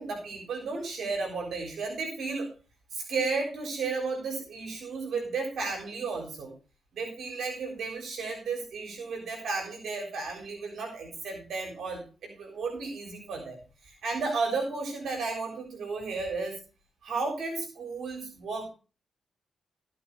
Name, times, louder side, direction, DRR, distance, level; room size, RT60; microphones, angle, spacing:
voice 1, 0.0-2.5 2.9-6.5 6.9-16.6 17.0-18.7, right 4 dB, 75° right, 3 dB, 3.8 m, -33 dB
15.0 x 5.8 x 4.7 m, 0.33 s
supercardioid pair, 50°, 0 cm